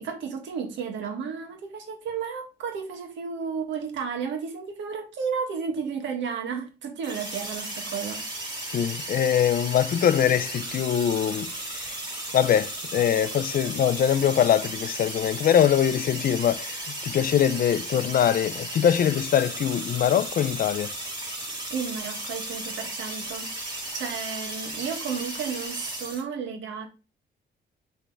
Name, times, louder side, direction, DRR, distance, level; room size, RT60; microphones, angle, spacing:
voice 1, 0.0-8.5 21.7-26.9, right 6 dB, 85° right, 1.6 m, -33 dB
sound 1, 7.0-26.2, right 1 dB, 25° right, 2.5 m, -35 dB
voice 2, 8.7-11.9 12.3-20.9, left 9 dB, 50° left, 0.4 m, -23 dB
6.2 x 3.4 x 4.6 m
cardioid pair, 115°, 19 cm